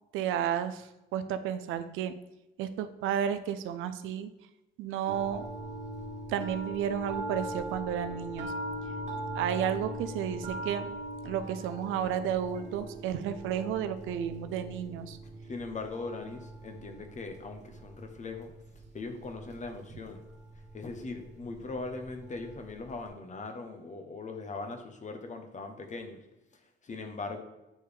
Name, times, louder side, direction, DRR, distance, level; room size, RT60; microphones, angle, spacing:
voice 1, 0.1-2.2 2.6-4.3 4.8-5.4 6.3-8.5 9.3-10.9 11.2-15.2, right 9 dB, 90° right, 10 dB, 0.4 m, -32 dB
sound 1, 5.1-23.1, right 1 dB, 35° right, 1.3 m, -41 dB
voice 2, 15.5-18.5 18.9-20.2 20.7-26.2 26.5-27.4, left 3 dB, 40° left, 6 dB, 0.9 m, -40 dB
8.5 x 3.2 x 3.5 m, 0.97 s
cardioid pair, 90°, 20 cm